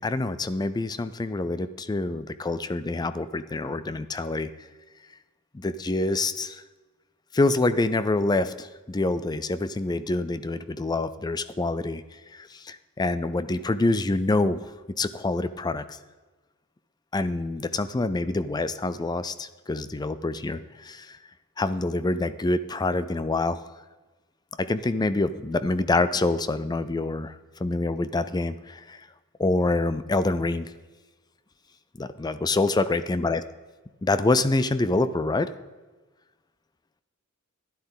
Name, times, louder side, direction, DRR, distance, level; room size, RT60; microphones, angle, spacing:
voice 1, 0.0-4.5 5.5-6.6 7.3-12.0 12.3-14.6 15.0-16.0 17.1-21.2 21.6-23.6 24.6-27.3 27.6-29.0 29.4-30.7 32.0-33.4 34.0-35.5, left 2 dB, 20° left, 14 dB, 0.4 m, -26 dB
11.5 x 11.0 x 4.0 m, 1.3 s
head